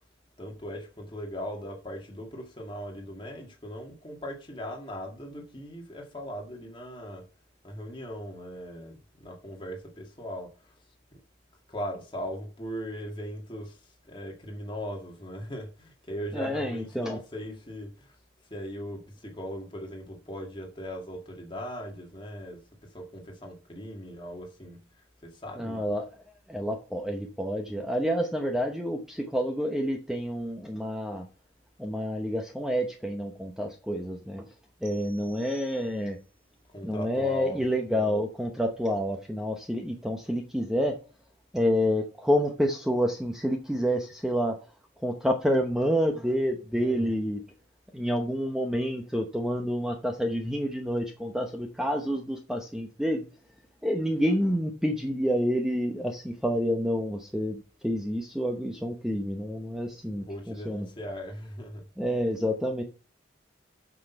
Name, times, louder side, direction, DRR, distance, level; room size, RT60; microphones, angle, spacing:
voice 1, 0.4-7.3 7.6-10.7 11.7-18.2 18.5-25.8 36.7-37.7 46.7-47.1 60.1-61.9, equal, 25° left, 2.1 m, -39 dB
voice 2, 16.3-17.2 25.6-26.1 26.5-31.3 31.8-34.5 34.8-36.2 36.8-41.0 41.5-44.6 45.0-47.4 47.9-53.3 53.8-60.9 62.0-62.8, equal, 5° right, 0.8 m, -28 dB
sound 1, 34.8-36.3, right 3 dB, 75° right, 2.0 m, -54 dB
8.3 x 6.2 x 5.7 m
head